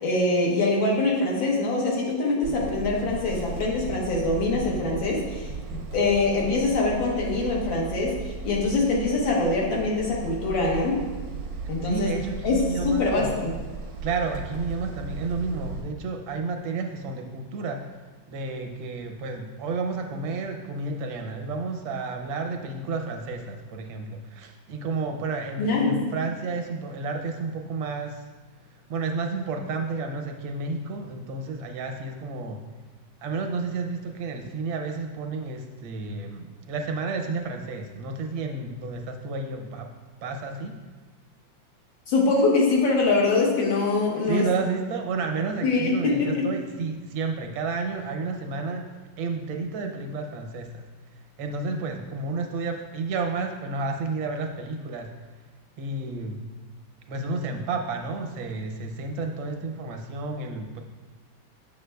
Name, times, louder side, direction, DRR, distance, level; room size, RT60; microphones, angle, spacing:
voice 1, 0.0-8.1 8.4-11.0 11.7-12.1 12.4-13.5 25.6-26.0 42.1-44.5 45.6-46.5, left 3 dB, 80° left, -3 dB, 1.9 m, -24 dB
sound 1, 2.4-15.8, right 4 dB, 70° right, 0.8 m, -36 dB
voice 2, 11.8-13.4 14.0-17.8 18.3-28.3 28.7-32.6 33.2-39.9 40.2-40.7 44.2-50.8 51.4-55.1 55.8-56.4 57.1-60.8, right 3 dB, 85° right, 4 dB, 1.5 m, -31 dB
7.0 x 6.6 x 2.2 m, 1.3 s
omnidirectional pair, 2.1 m